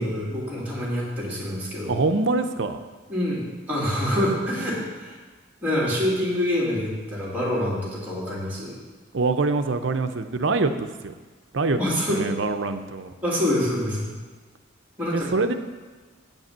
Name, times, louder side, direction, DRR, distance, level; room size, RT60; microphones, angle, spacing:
voice 1, 0.0-2.0 3.1-5.2 5.6-8.8 11.8-12.2 13.2-14.1 15.0-15.3, left 1 dB, 10° right, -6 dB, 2.7 m, -26 dB
voice 2, 1.9-2.8 9.1-11.1 11.5-11.8 12.1-13.1 15.1-15.5, right 3 dB, 60° right, 8 dB, 0.6 m, -24 dB
9.0 x 5.4 x 7.3 m, 1.4 s
head